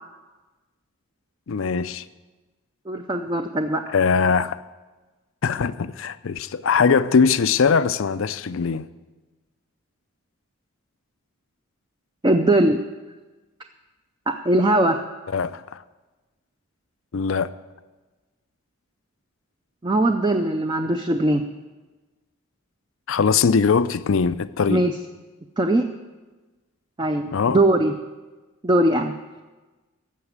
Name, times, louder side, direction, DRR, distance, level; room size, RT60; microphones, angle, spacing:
voice 1, 1.5-2.0 3.9-4.6 5.4-8.9 15.3-15.8 17.1-17.5 23.1-24.9 27.3-27.6, left 5 dB, 65° left, 0.4 m, -21 dB
voice 2, 2.9-3.8 12.2-12.8 14.3-15.0 19.8-21.4 24.7-24.9 25.6-25.9 27.0-27.3 27.5-27.9 28.6-29.1, right 1 dB, 20° right, 0.5 m, -20 dB
15.0 x 6.0 x 8.1 m
head